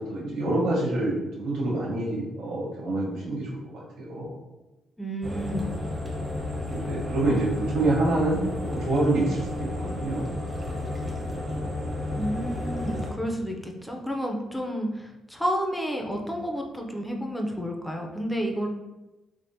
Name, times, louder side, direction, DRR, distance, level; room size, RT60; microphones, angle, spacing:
voice 1, 0.0-4.4 6.7-10.3, right 2 dB, 85° right, -5 dB, 1.0 m, -27 dB
voice 2, 5.0-5.7 12.2-18.7, equal, 5° left, 2 dB, 0.5 m, -30 dB
sound 1, 5.2-13.1, left 1 dB, 25° right, 0.9 m, -32 dB
3.4 x 2.5 x 2.6 m, 1.1 s
cardioid pair, 90°, 0 cm